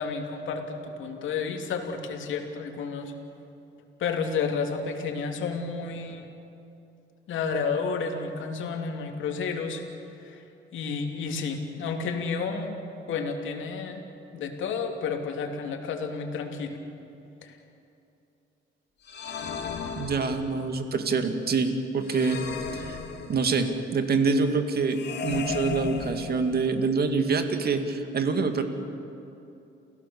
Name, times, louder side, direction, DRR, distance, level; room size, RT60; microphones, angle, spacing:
voice 1, 0.0-3.1 4.0-6.3 7.3-9.8 10.2-10.4 10.7-12.8 13.1-14.0 14.3-16.8 17.4-17.6, left 5 dB, 75° left, 3 dB, 2.8 m, -31 dB
sound 1, 19.0-20.7 22.0-23.7 24.9-26.8, left 5 dB, 60° left, 2.6 m, -35 dB
voice 2, 20.0-22.5 22.7-23.0 23.3-28.6, right 4 dB, 50° right, 6 dB, 2.3 m, -26 dB
29.0 x 16.5 x 7.0 m, 2.8 s
cardioid pair, 90°, 20 cm